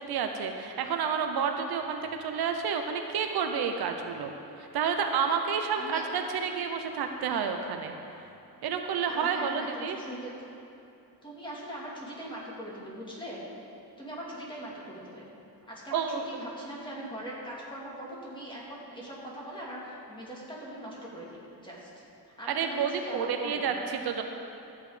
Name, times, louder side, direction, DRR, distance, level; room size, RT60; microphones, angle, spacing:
voice 1, 0.0-4.3 4.6-7.9 8.6-10.0 15.9-16.2 22.5-24.2, right 6 dB, 70° right, 5 dB, 0.9 m, -30 dB
voice 2, 9.1-10.3 11.2-13.4 14.0-15.3 15.7-22.0 22.4-23.8, right 1 dB, 10° left, -5 dB, 2.5 m, -41 dB
13.5 x 8.8 x 5.1 m, 2.8 s
cardioid pair, 150°, 39 cm